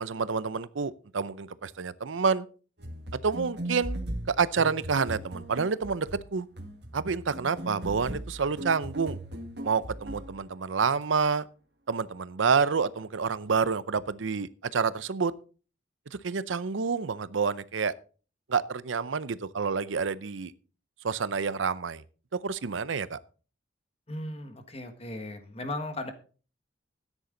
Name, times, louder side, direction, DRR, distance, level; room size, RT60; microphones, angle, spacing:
voice 1, 0.0-2.5 3.2-6.5 6.9-9.2 9.6-11.4 11.9-15.3 16.2-17.9 18.5-20.5 21.0-22.0 22.4-23.2, right 5 dB, 85° right, 0.6 m, -28 dB
sound 1, 2.8-10.4, right 1 dB, 60° right, 1.8 m, -38 dB
voice 2, 24.1-26.1, left 1 dB, 30° left, 1.6 m, -36 dB
13.0 x 9.9 x 3.9 m
head